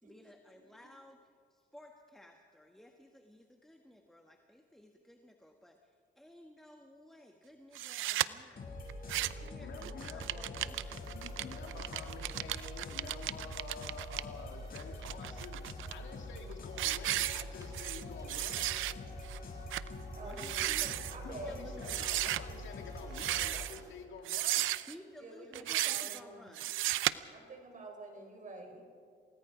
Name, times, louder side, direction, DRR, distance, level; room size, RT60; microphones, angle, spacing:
voice 1, 0.0-8.6 9.0-9.1 9.3-11.0 19.9-22.2 24.9-26.8, left 1 dB, ahead, 3 dB, 1.5 m, -55 dB
sound 1, 7.8-8.3 8.9-9.5 9.8-14.2 14.8-15.9 16.4-16.5 16.8-18.0 18.3-18.9 19.3-19.4 19.7-19.9 20.3-21.2 21.8-22.4 23.1-23.8 24.3-24.9 25.5-26.2 26.6-27.1, right 15 dB, 85° right, 0.6 m, -34 dB
sound 2, 8.5-23.7, left 1 dB, 45° left, 7.1 m, -45 dB
voice 2, 9.6-10.5 11.1-15.6 15.9-18.8 21.2-24.7, left 5 dB, 70° left, 3 dB, 2.7 m, -49 dB
sound 3, 10.6-24.1, right 1 dB, 15° right, 2.5 m, -61 dB
voice 3, 20.1-21.6 25.2-26.5 27.3-28.8, right 2 dB, 40° right, 3 dB, 4.9 m, -47 dB
28.5 x 19.0 x 5.1 m, 2.2 s
cardioid pair, 90°, 20 cm